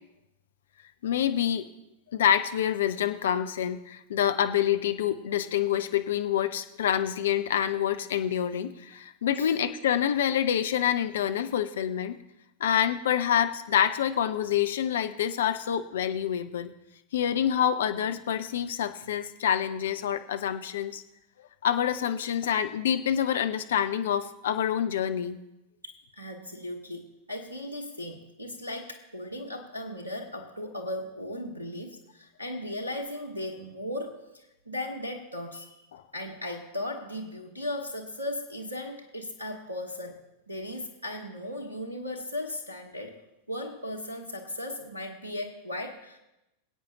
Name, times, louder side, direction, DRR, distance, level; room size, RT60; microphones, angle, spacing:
voice 1, 1.0-1.7 2.1-12.2 12.6-16.7 17.1-21.0 21.6-25.4 35.9-36.0, left 9 dB, 60° left, 9 dB, 0.7 m, -27 dB
voice 2, 25.8-35.8 36.1-40.1 40.5-43.1 43.5-46.2, left 1 dB, 85° right, 4 dB, 1.1 m, -37 dB
22.5 x 8.6 x 2.9 m, 0.92 s
figure-of-eight pair, 90°, 0 cm